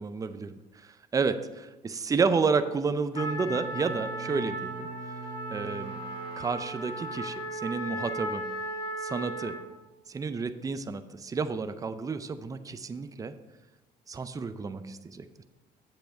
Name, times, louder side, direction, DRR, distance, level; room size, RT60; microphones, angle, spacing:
voice 1, 0.0-4.9 5.5-6.0 6.4-8.4 9.0-9.6 10.1-13.3 14.1-15.2, right 4 dB, 20° right, 11 dB, 0.5 m, -31 dB
Trumpet, 3.1-9.7, right 1 dB, 35° left, 2.9 m, -36 dB
Bowed string instrument, 3.1-7.8, right 4 dB, 65° right, 1.2 m, -45 dB
7.6 x 7.0 x 4.6 m, 1.1 s
cardioid pair, 110°, 17 cm